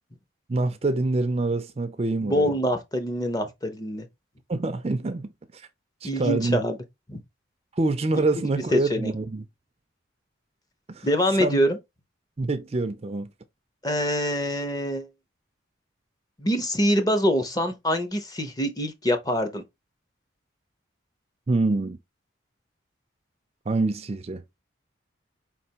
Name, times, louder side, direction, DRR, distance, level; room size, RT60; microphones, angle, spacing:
voice 1, 0.5-2.5 4.5-5.7 6.0-6.6 7.8-9.4 10.9-11.1 11.4-11.6 12.4-13.3 21.5-22.0 23.7-24.4, right 2 dB, 30° right, 0.4 m, -26 dB
voice 2, 2.2-4.1 6.0-6.8 7.1-7.2 8.7-9.1 11.0-11.8 13.8-15.1 16.4-19.6, equal, 20° left, 0.6 m, -25 dB
4.7 x 3.3 x 2.8 m
head